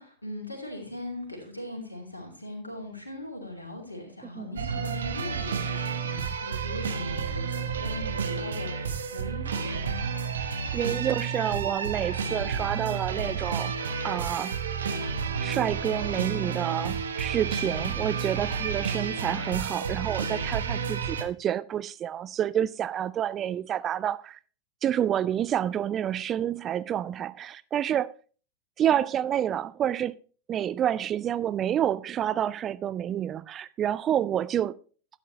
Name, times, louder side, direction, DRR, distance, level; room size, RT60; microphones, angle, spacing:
voice 1, 0.0-10.0, left 1 dB, 80° left, 2.7 m, -40 dB
sound 1, 4.6-21.2, right 6 dB, 65° right, 0.9 m, -31 dB
voice 2, 10.7-14.6 15.4-24.4 24.8-28.1 28.8-30.1 30.5-34.7, right 10 dB, 30° right, 0.3 m, -28 dB
11.5 x 9.1 x 3.1 m
figure-of-eight pair, 90°, 0 cm